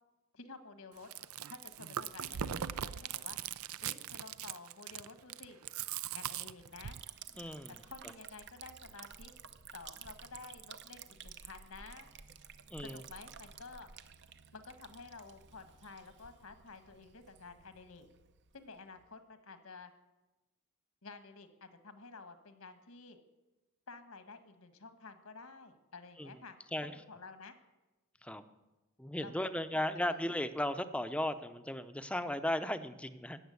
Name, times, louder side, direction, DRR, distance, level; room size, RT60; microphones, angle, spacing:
voice 1, 0.3-1.1 1.5-3.4 3.8-5.6 6.1-7.0 7.7-9.3 9.7-12.1 12.8-13.9 14.5-18.1 18.5-19.9 21.0-23.2 23.9-26.6 26.8-27.5 29.2-30.3, left 4 dB, 75° left, 9 dB, 1.6 m, -51 dB
Chewing mastication, 1.0-7.0, right 9 dB, 75° right, 0.5 m, -40 dB
Liquid, 6.7-19.1, right 7 dB, 55° right, 0.8 m, -53 dB
voice 2, 7.4-7.8 12.7-13.0 26.2-26.3 26.7-26.9 28.2-28.4 29.0-33.4, left 1 dB, 5° left, 10 dB, 0.6 m, -36 dB
16.5 x 7.3 x 9.5 m, 1.1 s
head